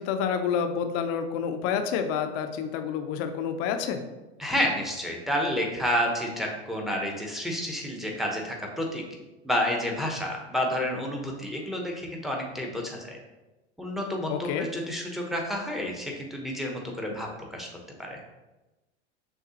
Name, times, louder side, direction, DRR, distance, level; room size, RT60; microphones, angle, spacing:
voice 1, 0.0-4.0 14.3-14.7, left 7 dB, 45° left, 7 dB, 0.6 m, -28 dB
voice 2, 4.4-9.0 9.4-13.2 13.8-17.7 18.0-18.2, equal, ahead, 0 dB, 0.8 m, -30 dB
6.4 x 2.3 x 2.8 m, 1.1 s
hypercardioid pair, 95°, 33 cm